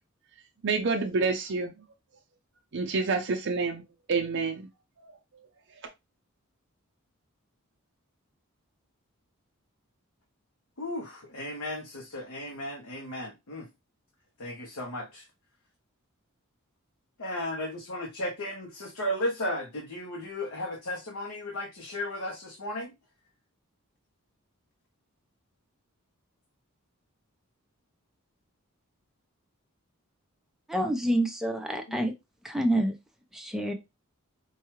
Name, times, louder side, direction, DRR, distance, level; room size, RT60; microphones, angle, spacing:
voice 1, 0.6-1.7 2.7-3.8 4.1-4.7, right 4 dB, 55° right, 0.5 m, -27 dB
voice 2, 10.8-13.7 14.4-15.2 17.2-22.9 31.9-32.0, left 1 dB, 75° left, 0.8 m, -35 dB
voice 3, 30.7-32.1 32.4-32.9 33.3-33.7, right 1 dB, ahead, 0.6 m, -27 dB
4.6 x 2.3 x 3.0 m
head